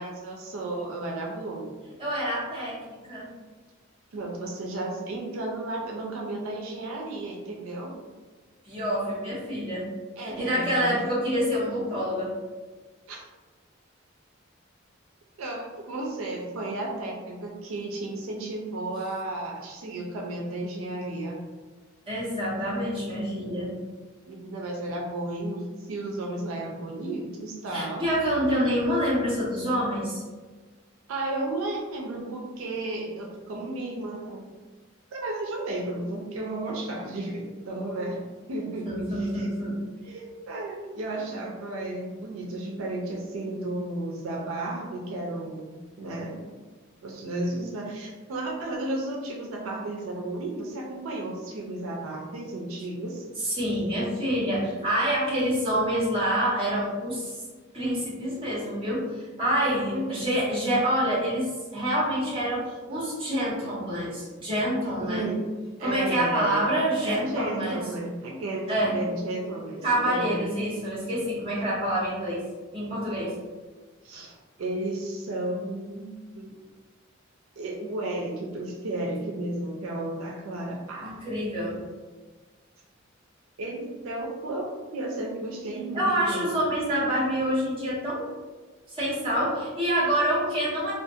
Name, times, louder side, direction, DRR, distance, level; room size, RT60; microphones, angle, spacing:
voice 1, 0.0-1.7 4.1-8.0 10.2-11.1 13.1-13.2 15.4-21.4 24.3-28.0 31.1-34.5 35.1-39.5 40.0-46.4 47.0-53.2 59.9-60.2 65.0-65.4 65.8-66.7 67.0-70.5 74.0-76.5 77.6-81.1 83.6-86.4, right 2 dB, 85° right, -1 dB, 0.4 m, -33 dB
voice 2, 2.0-3.3 8.6-9.9 10.2-12.3 22.1-23.7 27.7-30.2 38.9-39.8 53.4-57.3 57.7-65.2 65.8-67.8 68.7-69.0 69.8-72.4 72.7-73.4 81.0-81.8 85.9-88.3 88.9-90.9, equal, 25° right, -8 dB, 1.0 m, -27 dB
2.4 x 2.3 x 2.6 m, 1.3 s
head